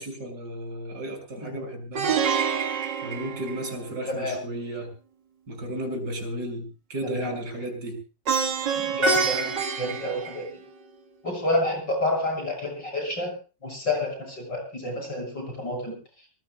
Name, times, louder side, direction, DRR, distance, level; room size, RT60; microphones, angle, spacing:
voice 1, 0.0-2.2 3.0-4.9 5.5-8.0, right 1 dB, 65° right, 3 dB, 6.7 m, -34 dB
Plucked string instrument, 2.0-4.1 8.3-10.9, right 5 dB, 80° right, 2.4 m, -27 dB
voice 2, 4.1-4.4 7.0-7.4 8.8-10.5 11.2-13.4 13.6-16.0, left 1 dB, 85° left, 3 dB, 7.8 m, -29 dB
25.0 x 20.0 x 2.3 m, 0.34 s
omnidirectional pair, 1.9 m